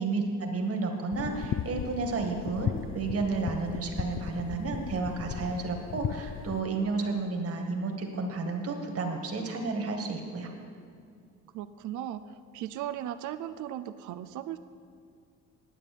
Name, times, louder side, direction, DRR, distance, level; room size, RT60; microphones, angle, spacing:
voice 1, 0.0-10.5, right 3 dB, 50° right, 3 dB, 1.9 m, -31 dB
sound 1, 1.1-6.6, left 9 dB, 45° left, 0.5 m, -36 dB
voice 2, 11.5-12.2 12.5-14.6, right 11 dB, 80° right, 12 dB, 0.5 m, -37 dB
10.0 x 9.0 x 6.8 m, 2.3 s
cardioid pair, 90°, 30 cm